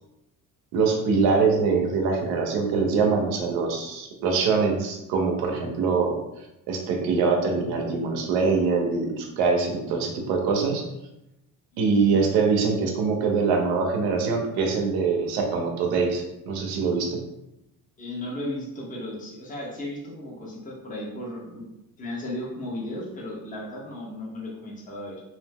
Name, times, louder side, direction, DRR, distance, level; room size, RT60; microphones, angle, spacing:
voice 1, 0.7-6.2 6.7-10.8 11.8-17.2, right 4 dB, 90° right, 1 dB, 0.7 m, -23 dB
voice 2, 11.7-12.2 18.0-25.2, left 1 dB, 20° left, -3 dB, 0.8 m, -35 dB
2.6 x 2.0 x 3.5 m, 0.90 s
cardioid pair, 95°, 37 cm